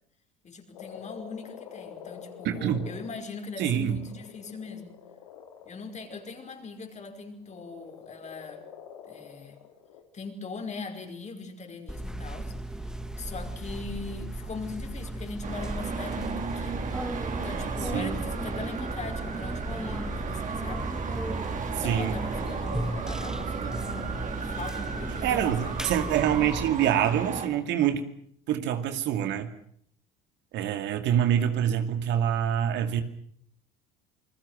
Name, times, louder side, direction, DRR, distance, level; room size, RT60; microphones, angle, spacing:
voice 1, 0.4-5.0 5.7-8.6 9.1-9.6 10.1-12.5 12.8-12.9 13.2-16.9 17.3-20.9 21.6-25.8, left 4 dB, 35° left, 5 dB, 5.3 m, -40 dB
Frog, 0.7-6.7 7.5-10.0, left 8 dB, 80° left, 3.4 m, -47 dB
voice 2, 2.4-2.9 3.6-4.0 17.9-18.1 21.8-22.2 25.2-28.1 28.5-29.5 30.5-33.0, right 9 dB, 60° right, 9 dB, 2.4 m, -26 dB
sound 1, 11.9-26.7, right 1 dB, 5° right, 2.2 m, -36 dB
Traffic noise roadway noise, 15.4-27.5, right 5 dB, 40° right, 4.5 m, -35 dB
28.5 x 21.0 x 6.5 m, 0.63 s
hypercardioid pair, 70°, 21 cm